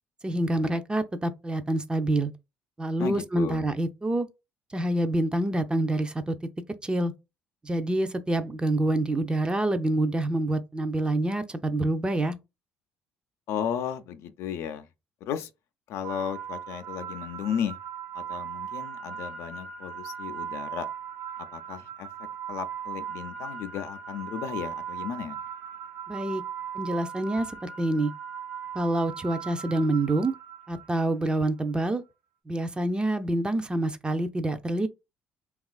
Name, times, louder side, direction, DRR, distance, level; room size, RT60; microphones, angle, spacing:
voice 1, 0.2-2.3 2.8-4.3 4.7-6.4 6.8-7.1 7.6-12.4 26.1-26.4 26.7-28.1 28.7-30.3 30.7-32.0 32.5-34.9, right 1 dB, 20° right, 0.5 m, -27 dB
voice 2, 3.0-3.6 13.5-14.9 15.2-15.5 15.9-17.8 18.1-20.9 21.5-22.1 22.5-25.4, left 8 dB, 65° left, 0.4 m, -34 dB
sound 1, 16.0-31.2, right 8 dB, 80° right, 0.9 m, -38 dB
2.9 x 2.4 x 2.3 m
hypercardioid pair, 60°, 5 cm